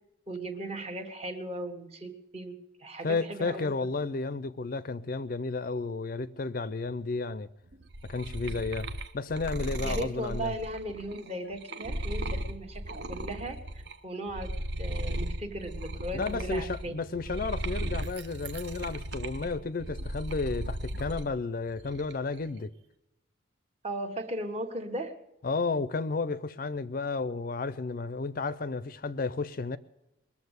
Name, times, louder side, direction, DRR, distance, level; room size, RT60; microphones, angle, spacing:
voice 1, 0.3-3.7 9.8-13.6 14.0-14.5 14.8-16.9 23.8-25.2, right 1 dB, 35° right, 1.4 m, -37 dB
voice 2, 3.0-7.5 8.1-10.5 16.1-22.7 25.4-29.8, left 3 dB, 45° left, 0.5 m, -32 dB
sound 1, 7.7-13.9 14.3-21.3 21.7-22.3, right 1 dB, 55° right, 0.8 m, -36 dB
21.0 x 7.2 x 8.0 m
head